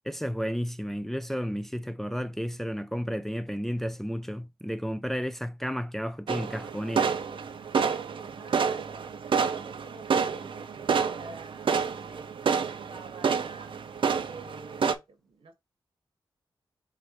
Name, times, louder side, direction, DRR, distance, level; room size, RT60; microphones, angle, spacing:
voice 1, 0.1-7.1, equal, 5° left, 0.4 m, -32 dB
sound 1, 6.3-14.9, right 6 dB, 70° right, 0.6 m, -29 dB
voice 2, 8.2-12.5 12.9-13.7 14.2-15.5, right 4 dB, 90° right, 1.4 m, -48 dB
6.5 x 2.6 x 3.0 m
wide cardioid pair, 100°, 9 cm